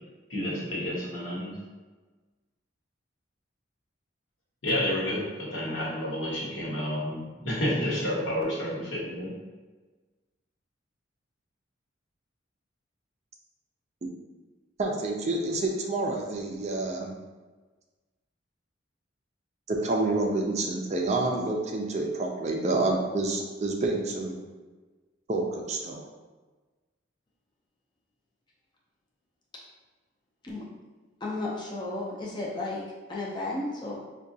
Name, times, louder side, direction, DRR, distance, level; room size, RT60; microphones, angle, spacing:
voice 1, 0.3-1.5 4.6-9.3, left 1 dB, 75° left, -5 dB, 1.1 m, -30 dB
voice 2, 14.8-17.1 19.7-24.4 25.3-26.0, right 2 dB, 35° right, 1 dB, 0.4 m, -28 dB
voice 3, 31.2-32.8 33.1-33.9, left 2 dB, 25° left, -4 dB, 0.5 m, -33 dB
4.8 x 2.2 x 2.6 m, 1.3 s
head